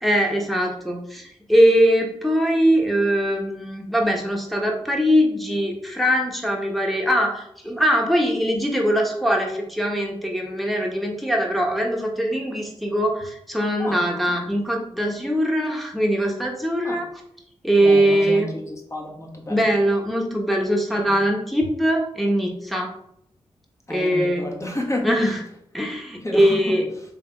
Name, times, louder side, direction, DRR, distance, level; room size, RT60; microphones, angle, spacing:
voice 1, 0.0-17.0 17.6-18.5 19.5-22.9 23.9-24.4 25.0-25.4 25.7-26.9, equal, ahead, 0 dB, 1.3 m, -21 dB
voice 2, 17.8-19.7 20.9-21.2 23.9-25.3 26.2-26.8, left 1 dB, 25° left, 0 dB, 1.4 m, -31 dB
3.5 x 3.2 x 4.5 m, 0.74 s
cardioid pair, 60°, 11 cm